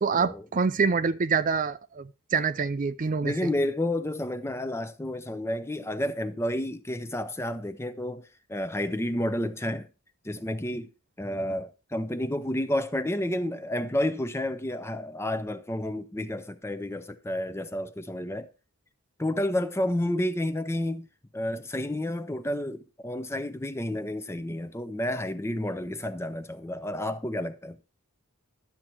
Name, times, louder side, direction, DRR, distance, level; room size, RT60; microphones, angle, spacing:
voice 1, 0.0-3.3, right 5 dB, 35° right, 0.4 m, -26 dB
voice 2, 3.2-9.9 10.2-10.9 11.2-18.5 19.2-21.1 21.3-27.8, left 1 dB, 10° left, 0.6 m, -30 dB
12.0 x 7.4 x 4.5 m
head